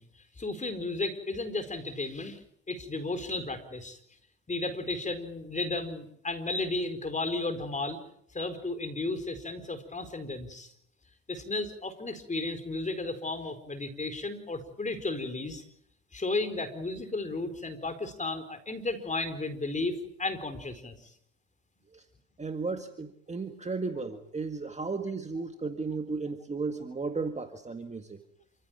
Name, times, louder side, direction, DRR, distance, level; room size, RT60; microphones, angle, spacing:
voice 1, 0.0-2.4 2.7-4.0 4.5-8.0 8.3-10.7 11.3-15.6 16.1-21.1, left 2 dB, 15° left, 10 dB, 4.5 m, -34 dB
voice 2, 22.4-28.2, right 4 dB, 15° right, 6 dB, 1.9 m, -34 dB
28.5 x 15.5 x 9.1 m, 0.70 s
supercardioid pair, 110°, 43 cm